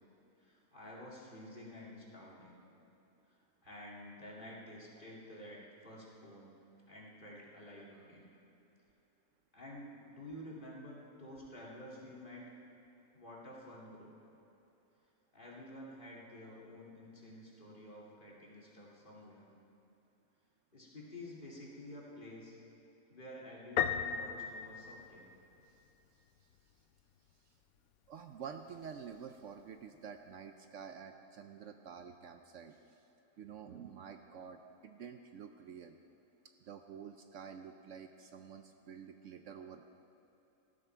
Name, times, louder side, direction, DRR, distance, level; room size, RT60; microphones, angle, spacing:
voice 1, 0.4-2.6 3.3-6.5 6.9-8.3 9.5-12.5 13.1-14.1 15.3-19.5 20.7-22.6 23.1-25.3, left 1 dB, 35° left, -4 dB, 2.6 m, -50 dB
Piano, 23.8-25.6, left 8 dB, 80° left, 1.1 m, -35 dB
voice 2, 28.1-32.8 33.4-36.0 36.6-39.9, right 7 dB, 65° right, 7 dB, 0.9 m, -49 dB
18.5 x 13.0 x 4.5 m, 3.0 s
omnidirectional pair, 1.5 m